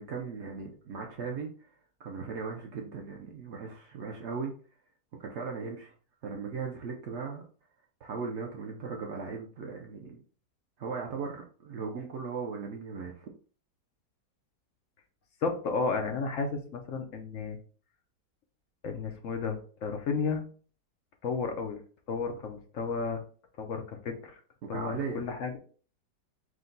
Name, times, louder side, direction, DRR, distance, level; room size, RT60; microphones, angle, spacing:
voice 1, 0.0-1.5 2.0-4.5 5.2-5.9 6.2-7.4 8.0-10.2 10.8-13.3 24.7-25.2, right 5 dB, 85° right, 1 dB, 0.6 m, -37 dB
voice 2, 15.4-17.6 18.8-20.4 21.2-21.8 22.1-23.2 23.6-24.4 24.7-25.6, left 4 dB, 65° left, 4 dB, 0.8 m, -33 dB
4.8 x 2.2 x 3.8 m, 0.42 s
omnidirectional pair, 1.9 m